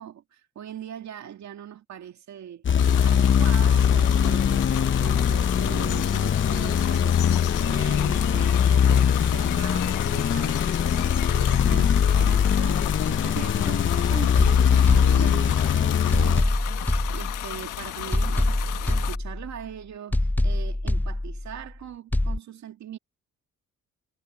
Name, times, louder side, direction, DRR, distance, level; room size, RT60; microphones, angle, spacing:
voice 1, 0.0-2.6 3.0-10.5 10.9-16.6 17.1-23.0, right 9 dB, 65° right, 2.2 m, -40 dB
sound 1, 2.6-16.4, left 8 dB, 40° left, 1.0 m, -21 dB
sound 2, 2.8-19.2, left 14 dB, 90° left, 1.6 m, -34 dB
sound 3, 16.1-17.7 18.1-19.7 20.1-21.7 22.1-22.4, left 1 dB, 5° left, 0.7 m, -25 dB
cardioid pair, 90°, 30 cm